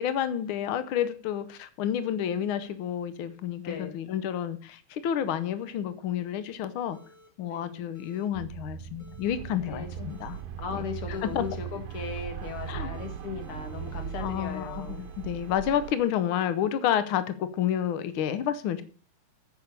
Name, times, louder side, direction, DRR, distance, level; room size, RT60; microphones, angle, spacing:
voice 1, 0.0-7.0 7.4-10.4 10.7-11.4 12.7-12.9 14.2-18.8, left 10 dB, 85° left, 13 dB, 1.1 m, -30 dB
sound 1, 6.9-7.3 7.9-8.2 9.0-9.3 10.1-10.4 11.1-11.5 11.9-12.7 12.9-16.7, left 1 dB, 10° left, 2.9 m, -57 dB
voice 2, 7.4-7.8 9.7-10.1 10.6-15.0, left 6 dB, 50° left, 6 dB, 2.4 m, -37 dB
sound 2, 8.3-14.5, right 9 dB, 80° right, 2.2 m, -41 dB
sound 3, 9.3-16.0, right 9 dB, 65° right, 1.8 m, -41 dB
9.8 x 8.2 x 6.7 m, 0.43 s
omnidirectional pair, 3.4 m